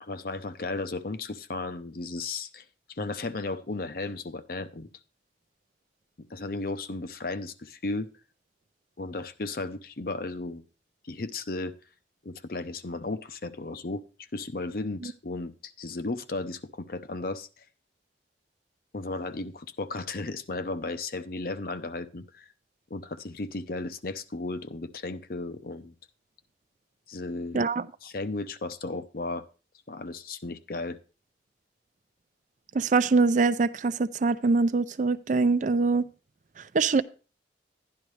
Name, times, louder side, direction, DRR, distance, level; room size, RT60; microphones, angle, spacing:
voice 1, 0.0-4.9 6.3-8.1 9.0-10.6 11.0-11.7 12.2-14.0 14.3-17.6 18.9-22.5 22.9-25.9 27.1-27.7 28.0-29.4 29.9-31.0, left 3 dB, 55° left, 0.7 m, -35 dB
voice 2, 27.5-27.9 32.7-36.0 36.7-37.0, right 4 dB, 45° right, 0.4 m, -23 dB
11.5 x 10.5 x 3.2 m
head